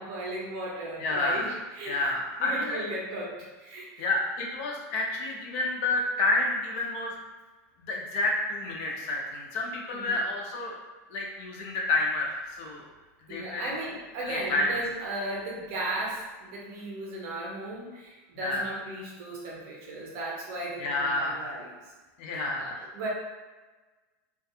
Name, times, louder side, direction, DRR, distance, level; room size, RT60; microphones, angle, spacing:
voice 1, 0.0-2.1 2.4-4.0 9.9-10.2 13.3-21.7 22.6-23.1, right 1 dB, 50° right, -4 dB, 0.6 m, -36 dB
voice 2, 1.0-1.5 1.8-2.8 4.0-7.1 7.8-10.8 11.1-12.8 13.2-13.7 14.2-14.7 18.3-18.7 20.8-21.5 22.2-22.9, left 2 dB, 50° left, -1 dB, 0.6 m, -29 dB
2.3 x 2.3 x 2.7 m, 1.2 s
supercardioid pair, 160°, 9 cm